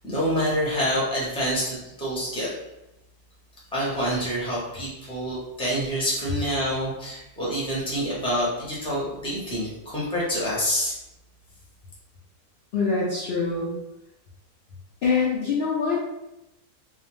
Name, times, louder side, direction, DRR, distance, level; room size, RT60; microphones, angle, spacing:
voice 1, 0.0-2.5 3.7-10.9, equal, 5° left, -7 dB, 0.6 m, -27 dB
voice 2, 12.7-13.7 15.0-16.0, left 5 dB, 85° left, -6 dB, 0.5 m, -24 dB
2.7 x 2.0 x 3.0 m, 0.90 s
omnidirectional pair, 1.6 m